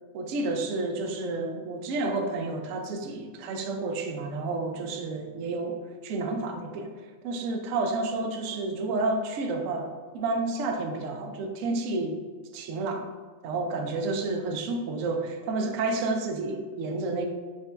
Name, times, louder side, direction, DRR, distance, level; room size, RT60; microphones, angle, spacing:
voice 1, 0.1-6.9 7.2-12.2 12.5-13.1 13.4-17.3, right 3 dB, 80° right, 3 dB, 0.7 m, -30 dB
5.1 x 2.7 x 3.3 m, 1.4 s
omnidirectional pair, 2.0 m